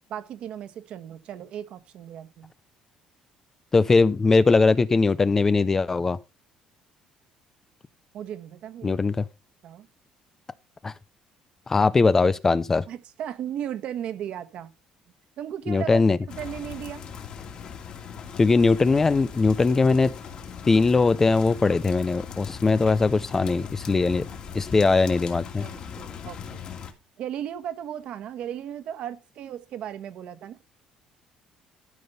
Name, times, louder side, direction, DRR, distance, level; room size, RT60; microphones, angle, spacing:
voice 1, 0.0-2.5 8.1-9.0 9.6-9.9 12.9-14.7 15.4-17.0 25.6-26.6 27.2-30.6, right 10 dB, 55° right, 1.3 m, -36 dB
voice 2, 3.7-6.2 8.8-9.2 10.8-10.9 11.7-12.8 15.7-16.2 18.4-20.1 20.7-24.2 24.5-25.6, left 4 dB, 20° left, 0.5 m, -20 dB
sound 1, 16.3-26.9, left 7 dB, 45° left, 2.4 m, -40 dB
13.0 x 5.3 x 5.5 m
cardioid pair, 150°, 2 cm